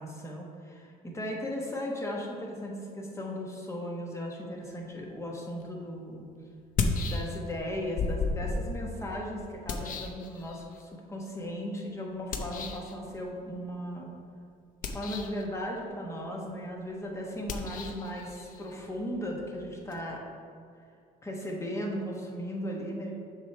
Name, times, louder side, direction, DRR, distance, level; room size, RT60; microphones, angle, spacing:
voice 1, 0.0-6.3 7.0-14.1 14.8-20.2 21.2-23.2, equal, 15° left, -1 dB, 1.3 m, -37 dB
sound 1, 5.6-5.7 6.6-7.6 8.0-10.8 12.3-12.9 14.7-15.5 17.4-20.0, left 4 dB, 55° left, 0.7 m, -34 dB
7.3 x 3.3 x 5.9 m, 2.3 s
cardioid pair, 110°, 17 cm